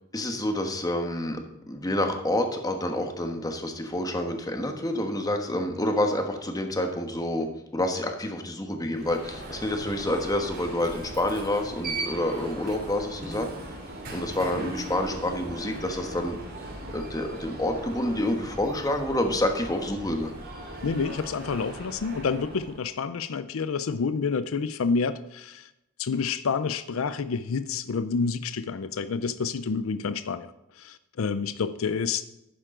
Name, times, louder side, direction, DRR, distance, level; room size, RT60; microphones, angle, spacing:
voice 1, 0.1-1.4 1.7-7.5 7.7-13.7 14.1-16.4 16.9-20.3, left 1 dB, 20° left, 5 dB, 1.2 m, -28 dB
Alarm, 8.9-22.8, right 1 dB, 50° right, 2.9 m, -39 dB
voice 2, 20.8-25.7 26.0-30.5 30.8-32.2, left 5 dB, 80° left, 13 dB, 0.5 m, -28 dB
11.0 x 9.5 x 3.8 m, 0.91 s
head